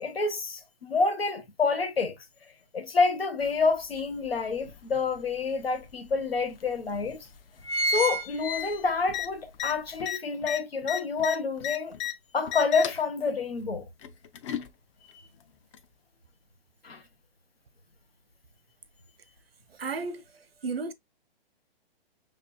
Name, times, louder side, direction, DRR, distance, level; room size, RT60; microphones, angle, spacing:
voice 1, 0.0-2.2 2.7-7.3 7.9-11.9 12.3-13.8 16.8-17.0, left 4 dB, 85° left, 1.2 m, -28 dB
sound 1, 3.4-3.5 4.0-5.2 5.8-5.9 6.1-6.2 6.9-7.1 7.4-9.2 9.6-9.7, right 1 dB, 70° left, 0.8 m, -30 dB
sound 2, 9.1-9.3 9.5-9.7 10.0-12.1 12.5-13.0 14.0-14.7 15.7-15.8, left 11 dB, 35° left, 0.5 m, -33 dB
voice 2, 19.7-20.9, right 4 dB, 85° right, 0.9 m, -34 dB
5.8 x 3.2 x 2.3 m
hypercardioid pair, 130°, 29 cm